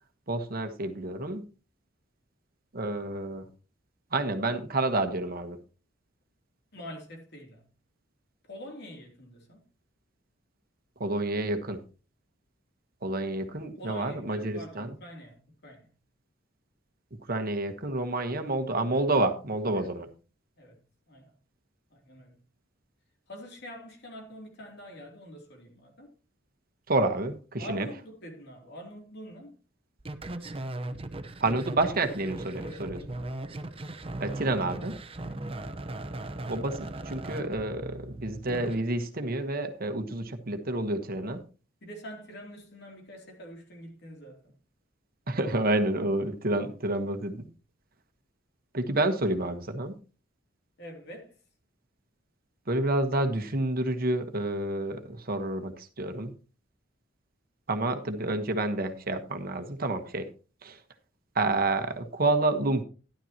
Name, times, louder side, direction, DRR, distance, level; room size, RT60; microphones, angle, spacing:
voice 1, 0.3-1.4 2.7-3.4 4.1-5.6 11.0-11.8 13.0-14.9 17.3-20.1 26.9-27.9 31.4-33.0 34.2-34.9 36.5-41.4 45.3-47.5 48.7-49.9 52.7-56.3 57.7-60.3 60.6-60.8 61.3-62.8, right 2 dB, 50° right, 1.2 m, -29 dB
voice 2, 6.7-7.6 8.4-9.6 13.8-15.9 19.7-20.0 20.6-20.8 21.1-21.3 21.9-22.4 23.3-26.1 27.6-29.6 32.6-33.3 35.2-35.5 41.8-44.5 46.5-46.7 50.8-51.4, equal, 60° left, 2.9 m, -45 dB
sound 1, 30.0-38.8, right 2 dB, 30° right, 0.9 m, -38 dB
12.5 x 11.5 x 2.9 m
head